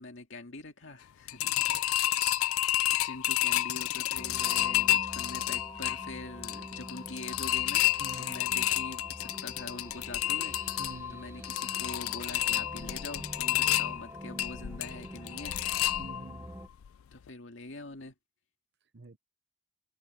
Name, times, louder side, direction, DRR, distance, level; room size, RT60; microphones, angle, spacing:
voice 1, 0.0-2.0 2.9-7.8 8.2-10.6 11.1-15.6 17.1-18.1, left 2 dB, 65° left, 2.2 m, -44 dB
sound 1, 1.3-16.4 16.8-16.9 17.3-17.4, left 15 dB, 85° left, 0.4 m, -30 dB
voice 2, 1.4-1.8 8.0-8.5 10.8-11.2 16.0-16.5 18.9-19.2, right 3 dB, 55° right, 0.9 m, -47 dB
sound 2, 4.1-16.7, equal, 15° right, 0.9 m, -46 dB
sound 3, 5.6-9.8, left 3 dB, 20° left, 2.7 m, -56 dB
head